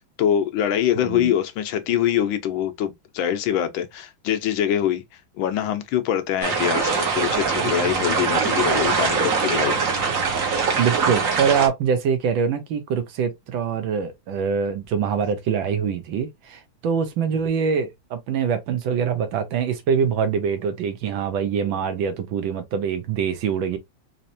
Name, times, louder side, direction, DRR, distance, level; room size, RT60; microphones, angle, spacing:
voice 1, 0.2-5.0 5.4-9.8, left 10 dB, 75° left, 1.4 m, -24 dB
sound 1, 6.4-11.7, right 5 dB, 50° right, 1.2 m, -22 dB
voice 2, 10.7-23.8, right 7 dB, 75° right, 1.5 m, -24 dB
4.2 x 2.8 x 2.6 m
omnidirectional pair, 2.3 m